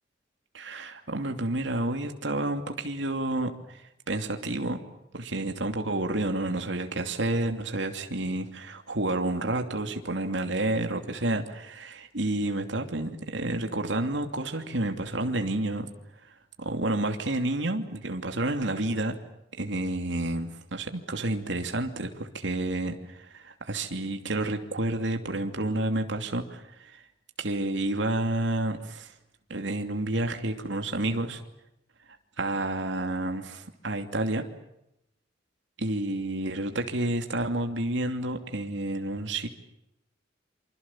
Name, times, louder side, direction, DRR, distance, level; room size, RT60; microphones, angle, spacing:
voice 1, 0.5-3.8 4.1-4.8 5.1-15.9 16.6-19.1 19.6-27.0 27.4-29.1 29.5-31.4 32.4-34.4 35.8-39.5, right 2 dB, 75° right, 5 dB, 2.7 m, -30 dB
28.0 x 26.0 x 7.3 m, 0.84 s
head